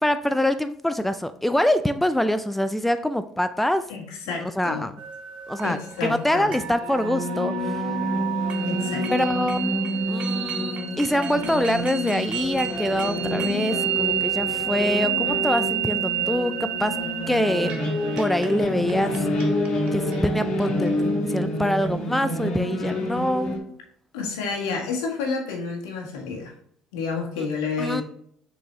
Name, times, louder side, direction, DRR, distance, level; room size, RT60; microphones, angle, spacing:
voice 1, 0.0-3.8 4.4-4.9 5.5-7.8 9.1-9.8 10.1-17.0 17.3-17.7 18.2-19.3 19.9-23.6 27.4-27.5 27.8-28.0, left 1 dB, 5° left, 11 dB, 0.4 m, -25 dB
voice 2, 3.9-4.8 5.6-6.5 8.6-9.3 24.1-26.5 26.9-28.0, left 4 dB, 85° left, 0 dB, 1.6 m, -30 dB
sound 1, 5.0-20.9, right 12 dB, 60° right, 0.9 m, -31 dB
sound 2, 6.5-23.6, left 1 dB, 50° left, 1.9 m, -28 dB
6.3 x 4.8 x 3.1 m, 0.65 s
hypercardioid pair, 70°, 2 cm